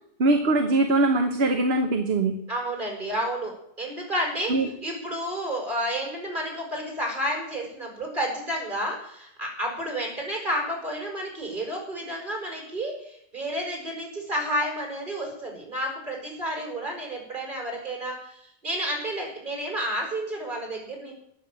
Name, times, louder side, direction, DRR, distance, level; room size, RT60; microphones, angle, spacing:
voice 1, 0.2-2.4 4.5-4.7, right 2 dB, 65° right, 5 dB, 1.4 m, -22 dB
voice 2, 2.5-4.5 4.8-21.2, right 1 dB, 50° right, 0 dB, 5.8 m, -31 dB
18.0 x 7.0 x 8.7 m, 0.74 s
omnidirectional pair, 1.1 m